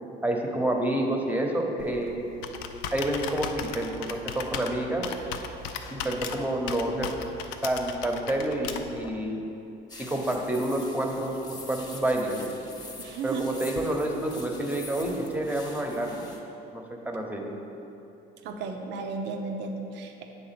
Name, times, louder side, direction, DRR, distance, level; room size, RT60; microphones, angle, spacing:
voice 1, 0.2-2.1 2.9-3.5 3.7-5.0 5.9-7.1 7.6-9.4 10.0-12.4 13.2-16.2 16.7-17.4, right 1 dB, 10° right, 1 dB, 0.9 m, -28 dB
Computer keyboard, 1.8-9.1, left 6 dB, 85° left, 0.5 m, -37 dB
sound 1, 9.9-16.4, left 2 dB, 20° left, 1.0 m, -45 dB
voice 2, 13.0-13.6 18.4-20.2, right 4 dB, 65° right, 3 dB, 0.7 m, -34 dB
7.9 x 3.7 x 5.9 m, 2.9 s
supercardioid pair, 95°, 20 cm